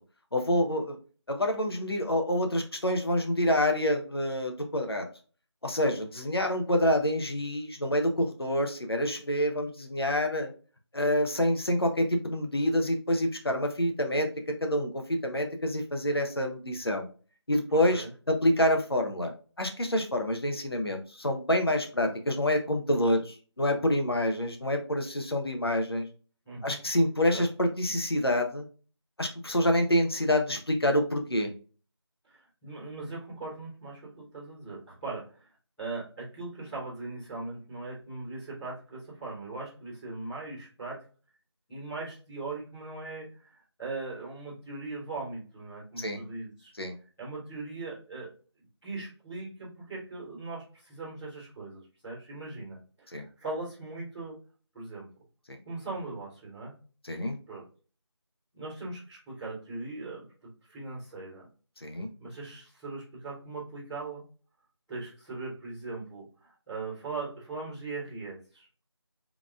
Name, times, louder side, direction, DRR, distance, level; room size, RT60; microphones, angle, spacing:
voice 1, 0.3-1.0 1.3-5.1 5.6-10.5 10.9-17.1 17.5-19.3 19.6-26.1 26.6-28.7 29.2-31.5 46.0-46.2 46.8-47.0 53.1-53.2 55.5-55.6 57.0-57.4 61.8-62.1, left 1 dB, 60° left, 4 dB, 0.9 m, -27 dB
voice 2, 26.4-26.8 27.3-27.4 32.2-35.5 35.8-41.0 41.7-46.7 47.2-48.3 48.8-54.4 54.7-55.1 55.6-56.7 57.5-57.6 58.5-61.5 62.2-64.2 64.9-68.8, right 3 dB, ahead, -18 dB, 1.2 m, -40 dB
4.2 x 3.5 x 2.4 m, 0.37 s
figure-of-eight pair, 170°, 15 cm